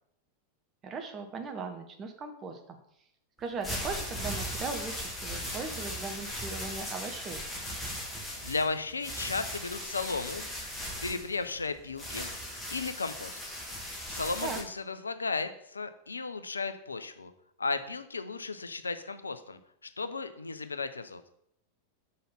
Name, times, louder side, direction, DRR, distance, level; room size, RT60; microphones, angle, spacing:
voice 1, 0.8-2.8 3.4-7.4 14.4-14.6, right 4 dB, 25° right, 5 dB, 1.0 m, -38 dB
sound 1, 3.4-14.6, equal, 5° left, 1.9 m, -38 dB
voice 2, 8.4-10.5 11.0-12.3 12.7-13.4 14.1-17.3 17.6-21.2, left 4 dB, 75° left, 10 dB, 0.5 m, -35 dB
5.2 x 4.0 x 5.9 m, 0.72 s
figure-of-eight pair, 90°, 0 cm